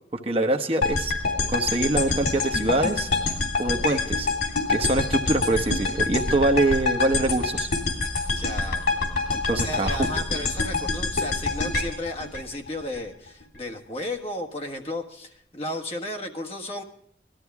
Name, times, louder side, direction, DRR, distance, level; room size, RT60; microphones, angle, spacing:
voice 1, 0.1-1.1 1.5-3.1 3.6-4.3 4.7-7.7 9.3-10.0, right 2 dB, 30° right, 4 dB, 0.9 m, -24 dB
sound 1, 0.8-13.0, left 3 dB, 90° left, 3.2 m, -26 dB
voice 2, 8.3-8.8 9.5-16.8, left 1 dB, 35° left, 3 dB, 1.5 m, -34 dB
18.5 x 13.0 x 3.5 m, 0.68 s
head